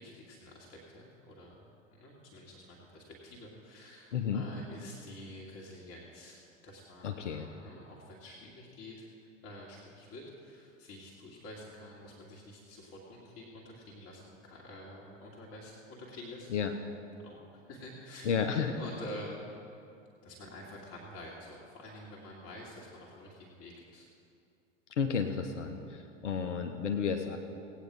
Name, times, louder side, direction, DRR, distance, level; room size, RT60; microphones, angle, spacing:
voice 1, 0.0-16.7 17.2-18.3 18.8-19.4 20.2-24.1, left 1 dB, 35° left, -3 dB, 2.1 m, -48 dB
voice 2, 4.1-4.4 7.0-7.5 16.5-16.7 18.2-18.8 25.0-27.4, left 6 dB, 70° left, 5 dB, 0.9 m, -32 dB
17.0 x 9.2 x 4.8 m, 2.6 s
figure-of-eight pair, 80°, 38 cm